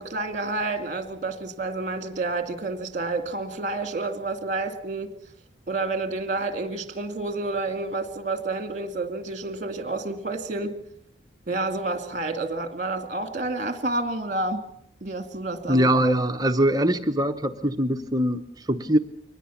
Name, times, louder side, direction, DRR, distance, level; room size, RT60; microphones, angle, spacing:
voice 1, 0.0-5.1 5.7-10.8 11.5-14.6 15.0-15.9, right 2 dB, 40° right, 9 dB, 2.2 m, -29 dB
voice 2, 15.7-19.0, right 1 dB, 20° right, 7 dB, 0.9 m, -22 dB
23.5 x 19.5 x 7.1 m, 0.68 s
head